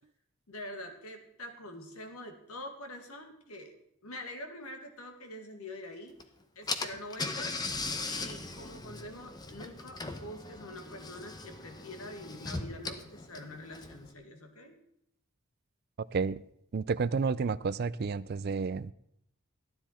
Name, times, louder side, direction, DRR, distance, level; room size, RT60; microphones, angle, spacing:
voice 1, 0.5-3.7 4.0-6.1 6.6-7.6 8.0-14.8, left 1 dB, 80° left, 2.0 m, -45 dB
Car / Engine, 6.2-6.3 6.7-14.1, left 3 dB, 20° left, 0.8 m, -39 dB
voice 2, 16.7-18.9, right 5 dB, 45° right, 0.4 m, -30 dB
14.0 x 10.0 x 4.3 m
head